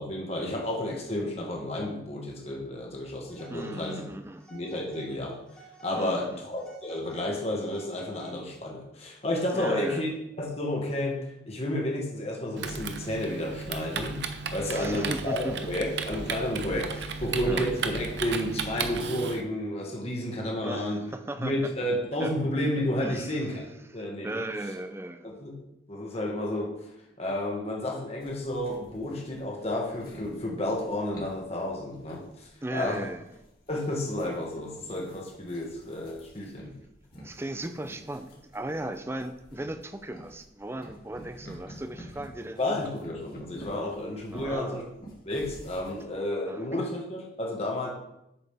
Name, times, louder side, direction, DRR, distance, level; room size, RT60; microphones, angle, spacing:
voice 1, 0.0-4.0 4.5-5.4 5.8-10.1 10.4-11.2 11.4-14.2 14.5-21.0 21.4-24.4 25.2-25.5 25.9-26.9 27.2-33.0 33.7-36.7 42.6-44.8 45.2-47.9, left 1 dB, 35° left, -1 dB, 1.6 m, -31 dB
Telephone, 3.3-4.0 4.4-5.1 5.5-6.2 6.6-8.6, right 4 dB, 5° left, 1.1 m, -52 dB
voice 2, 3.5-4.4 6.0-6.4 9.5-10.1 14.6-15.6 16.8-16.9 17.5-17.7 20.6-21.5 22.2-22.3 23.0-23.6 23.9-25.4 32.6-33.2 37.2-42.8 44.3-44.9 46.5-46.7, right 1 dB, 15° right, 9 dB, 0.4 m, -37 dB
Typing, 12.6-19.4, right 5 dB, 60° right, 0.6 m, -34 dB
sound 1, 28.2-46.0, equal, 50° left, 2.3 m, -50 dB
8.7 x 6.4 x 3.5 m, 0.85 s
head